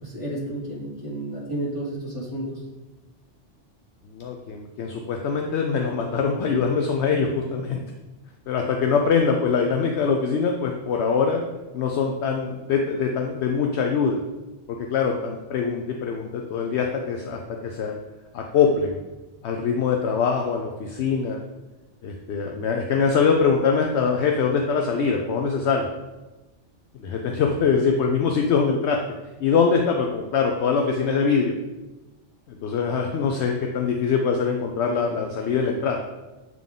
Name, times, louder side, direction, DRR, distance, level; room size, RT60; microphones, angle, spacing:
voice 1, 0.0-2.6, right 1 dB, 25° left, -8 dB, 2.2 m, -31 dB
voice 2, 4.1-7.8 8.5-11.4 11.7-14.2 14.7-17.9 18.3-19.0 19.4-21.4 22.0-25.9 27.0-29.0 29.4-31.5 32.5-36.0, left 5 dB, 70° left, 2 dB, 0.8 m, -23 dB
7.6 x 3.7 x 3.7 m, 1.1 s
omnidirectional pair, 1.2 m